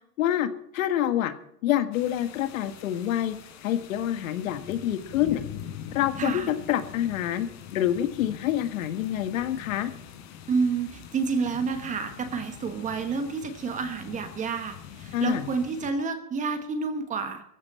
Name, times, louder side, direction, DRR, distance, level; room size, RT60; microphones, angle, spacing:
voice 1, 0.2-0.5 0.7-1.3 1.6-3.4 3.6-5.4 5.9-9.9 15.1-15.5, left 11 dB, 60° left, 10 dB, 1.7 m, -27 dB
sound 1, 1.9-15.9, left 9 dB, 45° left, 3.9 m, -44 dB
voice 2, 6.2-6.5 10.5-17.4, right 5 dB, 15° right, 8 dB, 1.3 m, -29 dB
18.5 x 14.5 x 4.3 m, 0.70 s
supercardioid pair, 155°, 46 cm